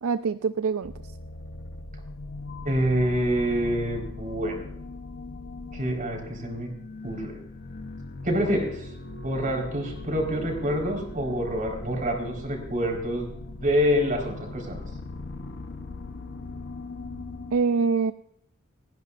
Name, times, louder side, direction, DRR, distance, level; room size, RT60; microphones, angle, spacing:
voice 1, 0.0-0.9 17.5-18.1, right 5 dB, 75° right, 11 dB, 0.4 m, -24 dB
sound 1, 0.8-17.5, left 2 dB, 55° left, 0.9 m, -39 dB
voice 2, 2.6-4.6 5.7-6.7 7.0-7.4 8.2-8.9 9.2-13.3 13.6-14.8, equal, 40° right, 1 dB, 4.4 m, -26 dB
29.0 x 10.5 x 2.5 m, 0.71 s
head